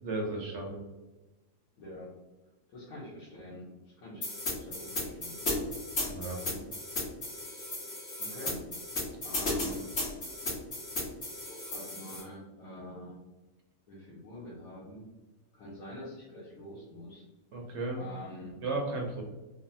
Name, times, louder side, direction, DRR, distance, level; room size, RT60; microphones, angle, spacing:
voice 1, 0.0-0.8 6.1-6.4 17.5-18.0 18.6-19.2, right 2 dB, 65° right, 0 dB, 0.7 m, -34 dB
voice 2, 1.8-2.1 2.7-5.7 6.4-6.6 8.2-8.6 9.2-9.9 11.6-13.2 13.9-15.1 15.5-17.3 17.9-18.6, left 1 dB, 75° left, -7 dB, 1.2 m, -46 dB
sound 1, 4.2-12.2, left 2 dB, 50° left, 1.3 m, -35 dB
3.3 x 2.1 x 2.6 m, 1.1 s
omnidirectional pair, 1.6 m